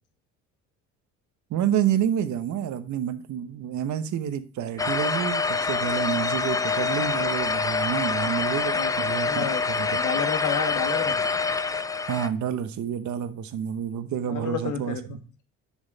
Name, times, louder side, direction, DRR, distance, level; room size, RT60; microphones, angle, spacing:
voice 1, 1.5-9.9 12.1-15.2, right 9 dB, 60° right, 1.0 m, -29 dB
sound 1, 4.8-12.3, left 4 dB, 10° left, 0.5 m, -26 dB
voice 2, 9.3-9.6 9.9-11.2 14.3-15.2, left 7 dB, 65° left, 1.5 m, -30 dB
7.2 x 6.3 x 4.0 m
cardioid pair, 90°, 32 cm